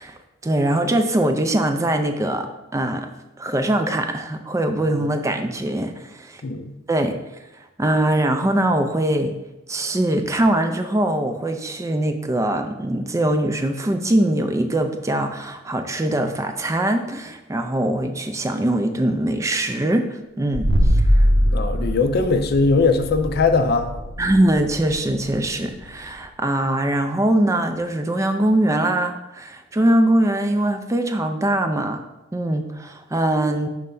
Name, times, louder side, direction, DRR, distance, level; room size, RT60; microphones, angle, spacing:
voice 1, 0.0-3.1 3.4-6.4 6.9-7.1 7.8-9.3 9.7-21.3 24.2-32.0 32.3-33.7, right 1 dB, 15° right, 6 dB, 0.4 m, -22 dB
voice 2, 6.4-6.7 21.5-23.9, left 4 dB, 55° left, 8 dB, 0.5 m, -20 dB
sound 1, 20.5-26.1, equal, 70° right, 0.8 m, -22 dB
5.6 x 3.2 x 5.3 m, 0.97 s
head